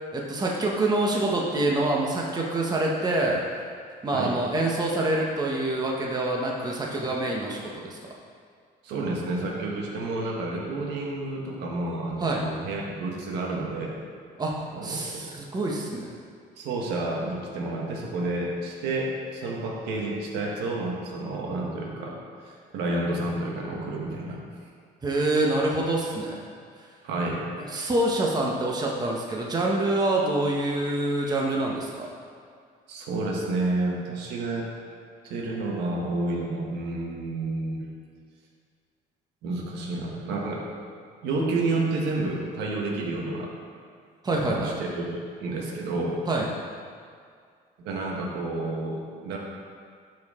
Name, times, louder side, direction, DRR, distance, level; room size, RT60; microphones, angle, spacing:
voice 1, 0.1-3.4 4.0-8.0 12.2-12.4 14.4-16.1 25.0-26.4 26.8-26.9 27.7-32.1 44.2-44.7 46.3-46.5, right 2 dB, 25° right, -2 dB, 1.1 m, -26 dB
voice 2, 8.8-13.9 14.7-15.3 16.6-22.2 22.4-24.4 27.0-27.5 32.9-34.7 35.2-37.9 39.4-40.7 41.2-43.5 44.4-46.2 47.8-49.4, right 2 dB, 85° right, -1 dB, 1.4 m, -30 dB
12.5 x 4.7 x 3.7 m, 2.1 s
cardioid pair, 110°, 17 cm